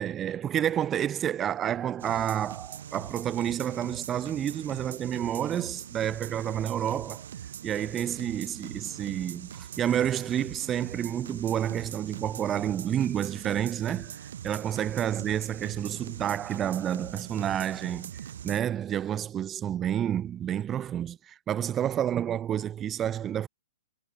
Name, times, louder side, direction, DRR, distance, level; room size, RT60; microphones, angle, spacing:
voice 1, 0.0-7.2 7.6-14.2 14.4-18.1 18.4-23.5, right 10 dB, 15° right, 2.0 m, -29 dB
sound 1, 2.0-18.6, right 9 dB, 55° right, 3.5 m, -42 dB
hypercardioid pair, 175°, 0 cm